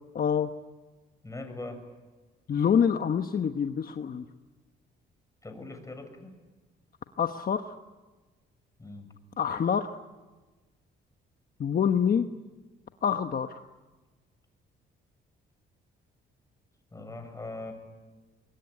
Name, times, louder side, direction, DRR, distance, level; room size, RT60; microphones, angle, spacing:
voice 1, 0.1-0.5 2.5-4.2 7.2-7.8 9.4-10.0 11.6-12.3 13.0-13.6, left 7 dB, 50° left, 7 dB, 1.2 m, -26 dB
voice 2, 1.2-1.8 5.4-6.3 8.8-9.1 16.9-17.7, left 2 dB, 15° left, 6 dB, 7.2 m, -41 dB
24.5 x 23.0 x 9.9 m, 1.3 s
cardioid pair, 90°, 20 cm